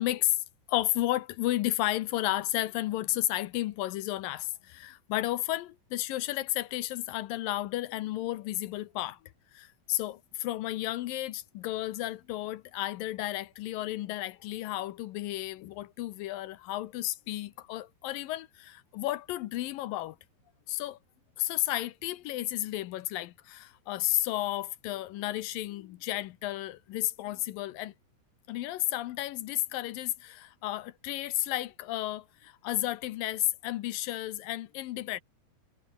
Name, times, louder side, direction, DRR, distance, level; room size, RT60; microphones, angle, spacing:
voice 1, 0.0-9.2 9.5-20.2 20.7-21.0 21.4-27.9 28.5-35.2, left 15 dB, 75° left, 2.5 m, -32 dB
omnidirectional pair, 4.2 m